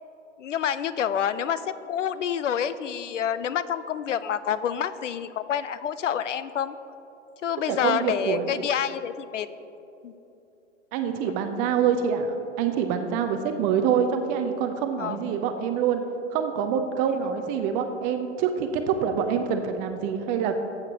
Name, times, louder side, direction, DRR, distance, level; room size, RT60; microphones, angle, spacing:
voice 1, 0.4-6.8 7.4-9.5 10.0-10.1 15.0-15.2 17.1-17.2, left 9 dB, 75° left, 14 dB, 0.5 m, -28 dB
voice 2, 7.7-8.6 10.9-16.0 16.3-20.5, right 7 dB, 20° right, 7 dB, 0.5 m, -26 dB
14.5 x 8.0 x 2.9 m, 3.0 s
figure-of-eight pair, 110°, 37 cm